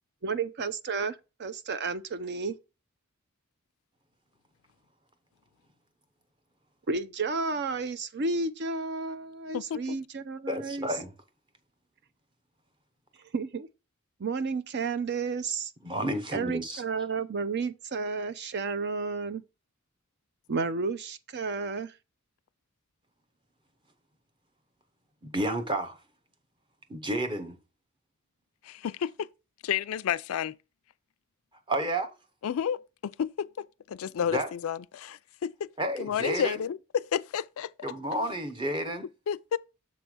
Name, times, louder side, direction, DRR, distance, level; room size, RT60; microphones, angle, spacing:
voice 1, 0.2-2.5 6.9-10.9 13.3-13.7 14.2-15.7 16.3-19.4 20.5-21.9, right 4 dB, 55° right, 0.6 m, -32 dB
voice 2, 9.5-10.0 28.6-29.3 29.6-30.6 32.4-35.7 36.0-37.9 39.3-39.6, left 8 dB, 70° left, 0.4 m, -31 dB
voice 3, 10.5-11.1 15.8-16.8 25.2-26.0 26.9-27.6 31.7-32.1 34.3-34.5 35.8-36.6 37.8-39.1, right 1 dB, 25° right, 0.9 m, -31 dB
7.2 x 3.3 x 6.0 m
head